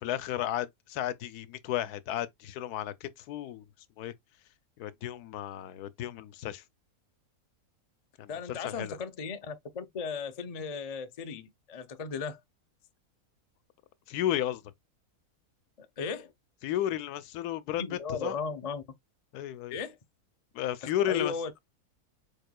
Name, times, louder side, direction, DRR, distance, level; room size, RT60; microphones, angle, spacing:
voice 1, 0.0-3.7 4.0-4.1 4.8-6.6 8.2-9.0 14.1-14.6 16.6-18.4 19.3-19.8 20.5-21.3, left 12 dB, 85° left, 1.1 m, -33 dB
voice 2, 8.3-12.4 15.8-16.3 17.8-18.8 19.7-20.0 20.8-21.5, left 5 dB, 50° left, 0.4 m, -36 dB
4.9 x 4.8 x 2.2 m
omnidirectional pair, 1.6 m